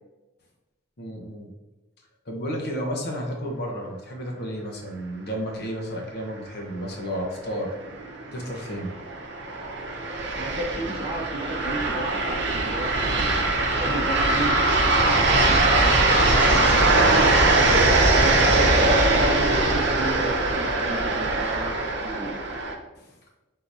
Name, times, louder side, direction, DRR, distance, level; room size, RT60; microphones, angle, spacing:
voice 1, 1.0-1.5 2.3-7.7 8.3-8.9 23.0-23.1, equal, 55° left, 0 dB, 0.9 m, -32 dB
sound 1, 7.9-22.7, right 2 dB, 60° right, 0.7 m, -21 dB
voice 2, 10.3-13.4 13.8-17.1 17.6-22.4, right 1 dB, 30° right, -2 dB, 0.9 m, -34 dB
4.6 x 3.8 x 2.7 m, 1.1 s
head